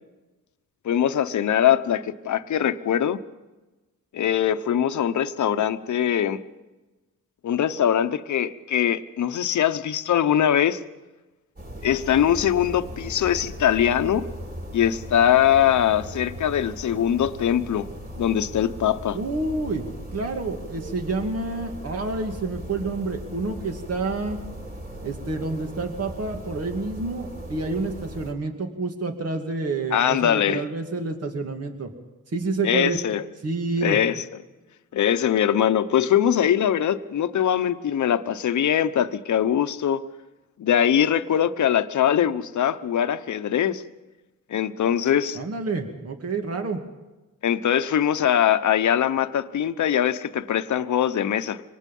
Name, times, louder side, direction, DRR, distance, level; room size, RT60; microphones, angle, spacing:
voice 1, 0.8-3.2 4.1-6.4 7.4-10.8 11.8-14.3 14.7-17.9 18.2-19.2 29.9-30.6 32.6-33.2 33.8-34.2 34.9-40.0 40.6-43.8 44.5-45.4 47.4-51.6, left 9 dB, 65° left, 1.0 m, -22 dB
sound 1, 11.6-28.3, right 1 dB, 30° right, 4.1 m, -38 dB
voice 2, 19.1-19.8 20.1-24.4 25.0-31.9 32.3-33.0 33.4-34.0 45.3-46.8, right 3 dB, 50° right, 2.4 m, -28 dB
24.5 x 19.0 x 5.5 m
cardioid pair, 85°, 32 cm